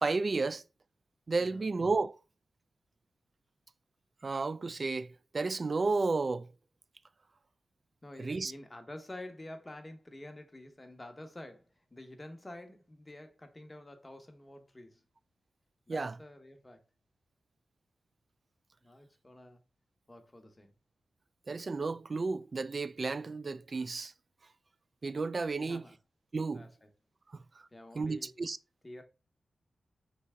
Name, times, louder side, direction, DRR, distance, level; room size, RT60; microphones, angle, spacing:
voice 1, 0.0-0.6 1.3-2.1 4.2-6.5 8.2-8.5 15.9-16.2 21.5-24.1 25.0-25.8 26.3-26.7 27.3-27.4 28.0-28.6, right 3 dB, 50° right, 0.3 m, -32 dB
voice 2, 8.0-15.0 15.9-16.8 18.8-19.6 20.1-20.7 25.6-26.0 26.5-26.9 27.7-28.3 28.8-29.0, left 1 dB, 25° left, 1.0 m, -49 dB
4.0 x 3.3 x 3.6 m
cardioid pair, 50°, 0 cm